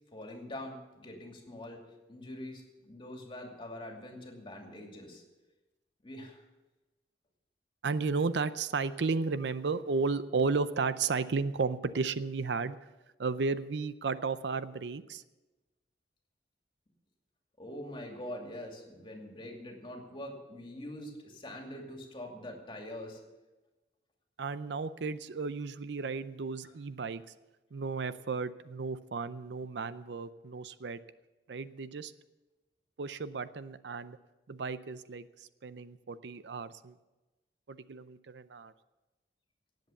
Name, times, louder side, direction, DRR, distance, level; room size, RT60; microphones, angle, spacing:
voice 1, 0.1-1.8 2.1-5.2 6.0-6.4 17.6-23.2 26.6-26.7, left 1 dB, 30° left, 2 dB, 2.5 m, -44 dB
voice 2, 7.8-12.8 13.2-15.2 24.4-27.2 27.7-31.0 31.5-32.1 33.0-34.2 34.5-36.9 37.7-38.7, right 4 dB, 70° right, 14 dB, 0.5 m, -33 dB
18.0 x 8.0 x 7.1 m, 1.1 s
head